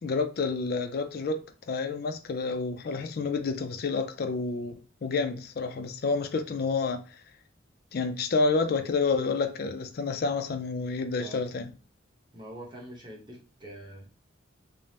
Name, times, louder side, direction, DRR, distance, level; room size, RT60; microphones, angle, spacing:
voice 1, 0.0-7.2 7.9-11.7, left 4 dB, 50° left, 0.3 m, -29 dB
voice 2, 12.3-14.1, right 1 dB, 20° right, 0.8 m, -44 dB
2.6 x 2.0 x 3.2 m
head